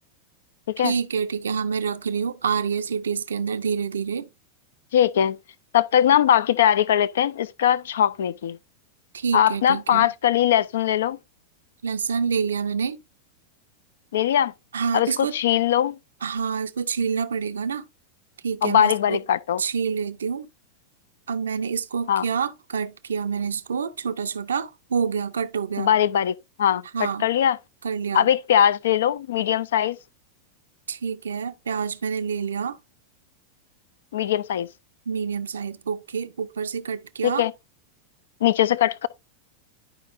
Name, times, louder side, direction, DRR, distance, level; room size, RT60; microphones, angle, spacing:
voice 1, 0.8-4.3 9.1-10.1 11.8-13.0 14.7-15.3 16.2-17.8 18.4-19.2 19.6-20.5 21.3-25.9 26.9-27.3 27.8-28.3 30.9-32.8 35.1-37.5, right 6 dB, 70° right, 0.6 m, -27 dB
voice 2, 4.9-5.4 5.7-8.6 9.3-11.2 14.1-14.5 14.9-16.0 18.6-19.6 22.1-22.2 25.8-27.6 28.1-30.0 34.1-34.7 37.2-37.5 38.4-39.1, left 10 dB, 60° left, 0.5 m, -21 dB
11.0 x 4.9 x 2.5 m
figure-of-eight pair, 90°, 0 cm